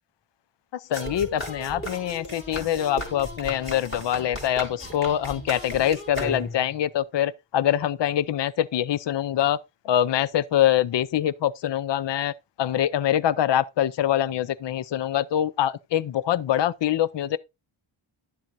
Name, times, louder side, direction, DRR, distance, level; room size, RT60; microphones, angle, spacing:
voice 1, 0.7-9.6 9.8-17.4, left 11 dB, 60° left, 0.6 m, -24 dB
sound 1, 0.9-6.7, left 1 dB, 25° left, 3.8 m, -36 dB
12.0 x 7.5 x 2.6 m
wide cardioid pair, 110°, 49 cm